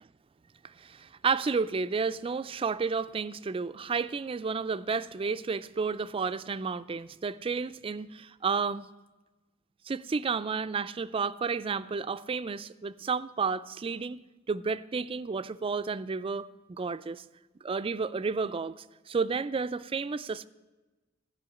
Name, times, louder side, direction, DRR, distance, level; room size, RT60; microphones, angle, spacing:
voice 1, 0.6-8.9 9.9-14.2 14.5-17.2 17.6-20.5, right 5 dB, 25° right, 0.3 m, -31 dB
14.5 x 5.6 x 9.6 m
head